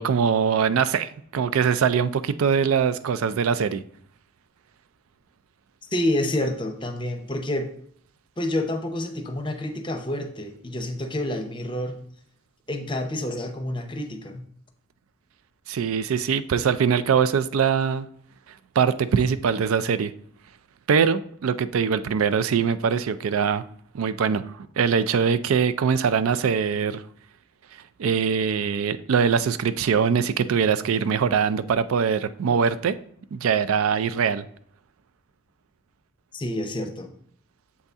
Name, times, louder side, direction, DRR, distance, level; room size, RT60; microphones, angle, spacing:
voice 1, 0.0-3.8 15.7-18.1 18.8-20.1 20.9-23.6 23.9-27.0 28.0-33.0 33.3-34.4, right 6 dB, 85° right, 13 dB, 0.4 m, -22 dB
voice 2, 5.9-7.7 8.4-12.0 12.7-14.5 36.3-37.1, left 1 dB, 25° left, 6 dB, 0.6 m, -28 dB
7.4 x 4.1 x 3.5 m, 0.62 s
head